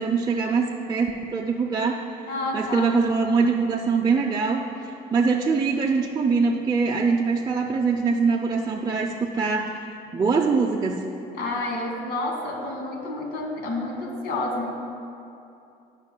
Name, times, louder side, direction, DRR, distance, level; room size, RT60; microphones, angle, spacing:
voice 1, 0.0-2.0 2.5-9.8 10.1-11.0, right 4 dB, 25° right, -1 dB, 0.5 m, -23 dB
voice 2, 2.3-2.9 11.3-14.8, left 2 dB, 80° left, 0 dB, 1.6 m, -29 dB
16.0 x 5.7 x 2.2 m, 2.7 s
cardioid pair, 110°, 17 cm